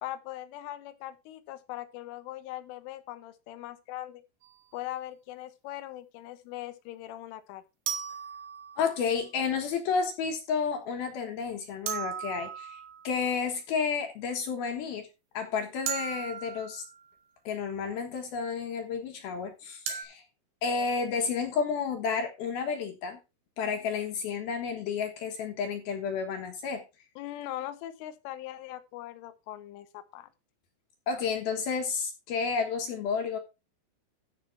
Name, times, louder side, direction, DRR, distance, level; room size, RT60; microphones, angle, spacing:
voice 1, 0.0-4.2 4.7-7.6 27.2-30.3, left 14 dB, 90° left, 3.5 m, -40 dB
sound 1, 4.4-4.6 7.9-9.1 11.9-13.2 15.9-17.1 19.9-20.0, right 8 dB, 65° right, 3.8 m, -36 dB
voice 2, 8.8-12.8 13.0-15.1 15.3-16.8 17.5-20.2 20.6-23.2 23.6-26.8 31.1-33.4, left 5 dB, 65° left, 2.7 m, -31 dB
13.5 x 5.7 x 4.5 m
omnidirectional pair, 5.5 m